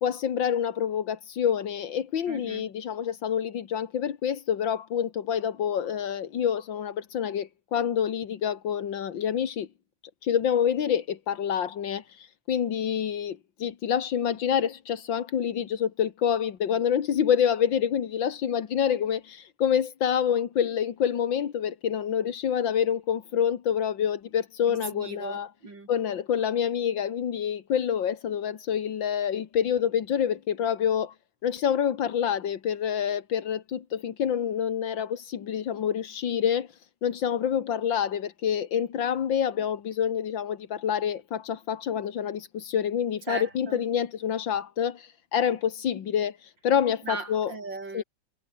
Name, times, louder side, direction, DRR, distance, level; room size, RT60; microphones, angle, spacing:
voice 1, 0.0-9.7 10.2-25.5 25.9-31.1 31.4-47.5 47.9-48.0, left 8 dB, 85° left, 2.2 m, -27 dB
voice 2, 2.3-2.7 24.7-25.9 43.3-43.8 47.0-48.0, right 3 dB, 80° right, 5.6 m, -37 dB
omnidirectional pair, 2.0 m